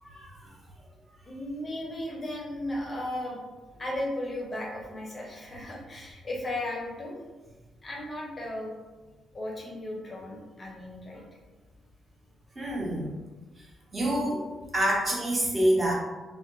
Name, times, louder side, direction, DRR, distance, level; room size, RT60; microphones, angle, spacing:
voice 1, 0.0-0.5 12.6-13.1 13.6-13.7 13.9-15.9, right 1 dB, 20° right, -4 dB, 0.6 m, -27 dB
voice 2, 1.3-3.4 3.7-7.2 7.8-8.7 9.3-11.2, left 1 dB, 20° left, -2 dB, 0.5 m, -35 dB
2.4 x 2.1 x 2.9 m, 1.2 s
wide cardioid pair, 175°, 0 cm